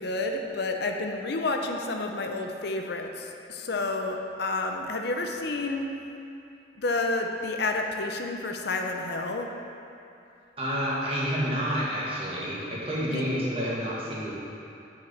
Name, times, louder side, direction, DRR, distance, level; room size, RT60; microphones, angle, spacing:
voice 1, 0.0-5.9 6.8-9.5 13.1-13.2, left 2 dB, 65° left, 3 dB, 0.7 m, -30 dB
voice 2, 10.6-14.3, equal, 30° right, -7 dB, 2.0 m, -29 dB
7.5 x 4.9 x 7.3 m, 2.7 s
head